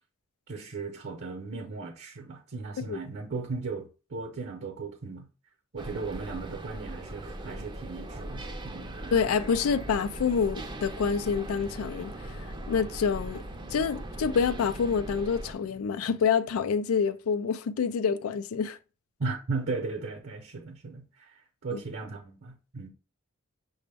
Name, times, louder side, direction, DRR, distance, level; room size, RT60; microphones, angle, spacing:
voice 1, 0.5-5.3 5.7-8.9 19.2-22.9, right 4 dB, 60° right, 0.7 m, -36 dB
sound 1, 5.8-15.5, right 1 dB, 20° right, 0.5 m, -40 dB
sound 2, 8.3-16.7, right 1 dB, 25° left, 0.7 m, -50 dB
voice 2, 9.1-13.4 13.7-18.8 19.2-19.3 21.7-21.8, left 6 dB, 85° left, 0.4 m, -27 dB
5.9 x 2.1 x 3.4 m
head